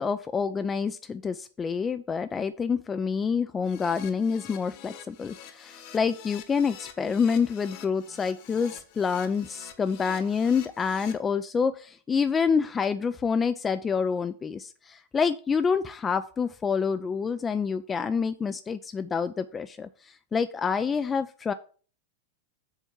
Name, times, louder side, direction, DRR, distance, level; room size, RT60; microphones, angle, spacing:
voice 1, 0.0-21.5, left 6 dB, 20° left, 11 dB, 0.4 m, -27 dB
Keyboard (musical), 3.6-11.1, left 9 dB, 45° left, 1.3 m, -47 dB
7.3 x 4.4 x 7.0 m, 0.40 s
figure-of-eight pair, 90°, 0 cm